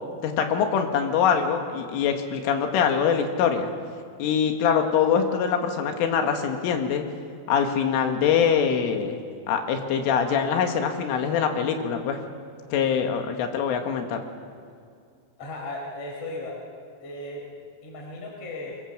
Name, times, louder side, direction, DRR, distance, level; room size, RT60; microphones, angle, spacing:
voice 1, 0.2-3.7 4.2-7.0 7.5-9.2 9.5-12.2 12.7-14.2, left 7 dB, 90° left, 4 dB, 4.2 m, -23 dB
voice 2, 15.4-16.6 17.0-18.8, left 2 dB, 35° left, -1 dB, 4.6 m, -36 dB
25.0 x 22.0 x 7.7 m, 2.3 s
omnidirectional pair, 5.6 m